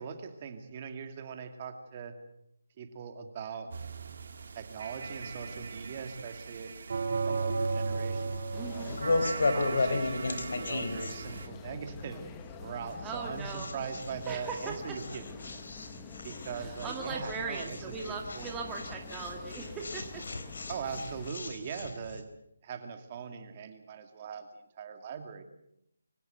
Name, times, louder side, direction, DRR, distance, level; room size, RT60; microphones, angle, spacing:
voice 1, 0.0-2.2 2.8-3.7 4.5-6.7 7.1-8.4 9.1-12.2 12.6-15.6 16.2-18.5 20.7-22.3 22.6-24.5 24.8-25.4, right 6 dB, 30° right, 7 dB, 2.5 m, -41 dB
sound 1, 3.7-11.5, right 4 dB, 55° right, 2.9 m, -36 dB
sound 2, 7.6-22.2, left 3 dB, 65° left, 3.9 m, -36 dB
sound 3, 8.5-21.3, left 5 dB, 15° left, 1.4 m, -48 dB
voice 2, 8.6-9.0 13.0-13.7 14.3-15.0 16.6-20.2, right 4 dB, 10° right, 0 dB, 2.0 m, -39 dB
25.5 x 16.5 x 8.0 m, 0.77 s
figure-of-eight pair, 160°, 0 cm